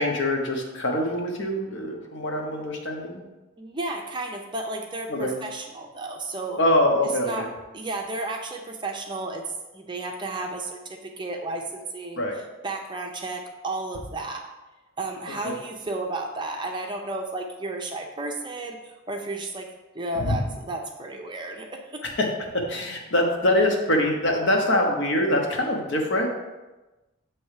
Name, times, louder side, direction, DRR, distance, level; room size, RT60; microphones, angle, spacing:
voice 1, 0.0-3.2 5.1-5.3 6.6-7.5 12.2-12.3 15.4-15.6 20.1-20.4 22.0-22.3 22.5-26.3, left 1 dB, 60° left, 1 dB, 1.0 m, -24 dB
voice 2, 3.6-6.6 7.2-7.5 7.7-9.4 9.7-12.2 12.6-14.4 15.0-22.0, right 2 dB, 25° right, 2 dB, 0.5 m, -33 dB
7.6 x 3.1 x 4.8 m, 1.1 s
head